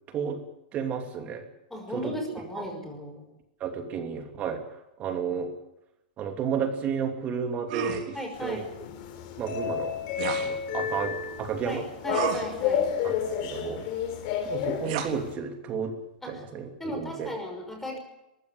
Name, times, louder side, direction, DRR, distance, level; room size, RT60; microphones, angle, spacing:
voice 1, 0.7-1.4 1.9-2.2 2.5-2.7 3.6-4.6 5.0-5.5 6.2-8.6 9.4-10.0 10.4-11.8 13.0-13.8 14.4-16.0 16.3-17.3, right 6 dB, 30° right, 5 dB, 2.9 m, -32 dB
voice 2, 1.7-3.2 8.1-8.7 11.7-12.9 16.2-16.4 16.8-18.0, equal, 5° left, 3 dB, 5.7 m, -36 dB
sound 1, 7.7-8.1 10.2-10.5 12.1-12.5 14.8-15.1, right 9 dB, 60° right, 3.6 m, -31 dB
sound 2, 8.3-15.3, left 8 dB, 50° left, 4.3 m, -31 dB
23.0 x 15.0 x 8.3 m, 0.92 s
supercardioid pair, 140°, 5 cm